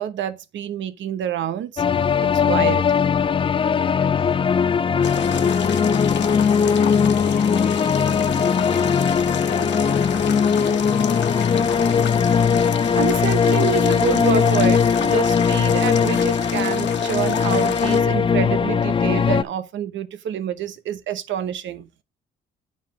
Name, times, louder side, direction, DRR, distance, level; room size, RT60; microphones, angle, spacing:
voice 1, 0.0-1.8 2.2-2.9 12.9-21.9, right 9 dB, 70° right, 1.0 m, -27 dB
sound 1, 1.8-19.4, left 6 dB, 25° left, 0.4 m, -19 dB
voice 2, 3.6-4.4 4.9-8.0 8.6-11.9, left 6 dB, 40° left, 1.3 m, -39 dB
sound 2, 5.0-18.0, left 8 dB, 65° left, 1.2 m, -30 dB
9.2 x 4.8 x 3.8 m
cardioid pair, 90°, 20 cm